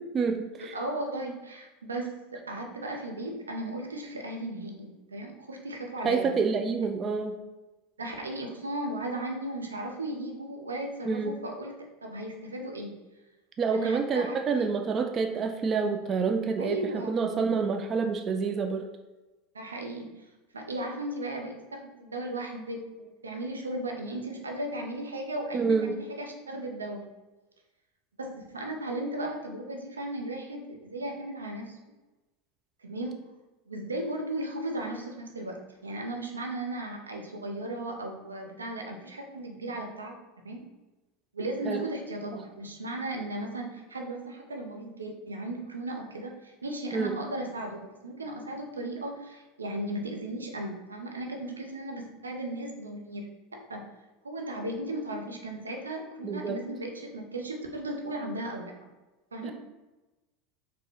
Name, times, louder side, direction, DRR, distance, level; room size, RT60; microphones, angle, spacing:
voice 1, 0.0-0.7 6.0-7.4 11.1-11.4 13.6-16.8 17.1-18.9 25.5-26.0 41.7-41.8 46.9-47.2 56.2-56.6 59.4-59.5, right 5 dB, 35° right, 6 dB, 0.4 m, -28 dB
voice 2, 0.6-6.3 8.0-13.0 13.7-14.4 16.6-17.2 19.5-20.3 20.5-27.1 28.2-31.8 32.8-33.2 33.7-40.2 40.4-40.7 41.3-53.9 54.2-58.9 59.3-59.5, right 1 dB, 90° right, 2 dB, 0.6 m, -36 dB
4.2 x 2.1 x 4.5 m, 1.1 s
hypercardioid pair, 85°, 0 cm